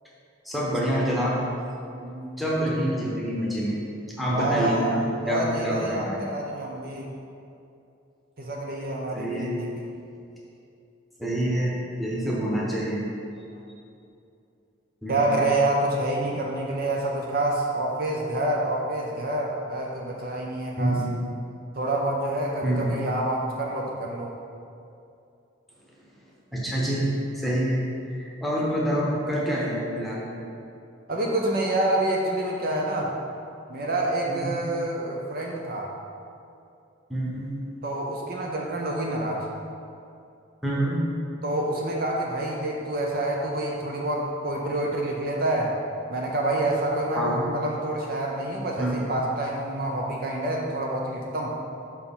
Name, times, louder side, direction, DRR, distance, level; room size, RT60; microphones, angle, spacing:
voice 1, 0.4-1.4 2.4-3.8 4.2-6.2 9.1-9.5 11.2-13.1 15.0-15.4 20.8-21.1 22.6-22.9 26.5-30.3 34.3-34.6 37.1-37.5 40.6-41.1 47.1-47.4 48.8-49.1, equal, ahead, -5 dB, 1.0 m, -27 dB
voice 2, 2.0-2.4 4.3-5.0 5.2-7.1 8.4-9.5 15.1-21.0 21.7-24.3 27.5-27.7 31.1-33.1 33.7-35.9 37.8-39.5 41.4-45.7 46.1-51.5, right 1 dB, 45° right, -1 dB, 0.6 m, -27 dB
5.7 x 4.6 x 5.4 m, 2.6 s
head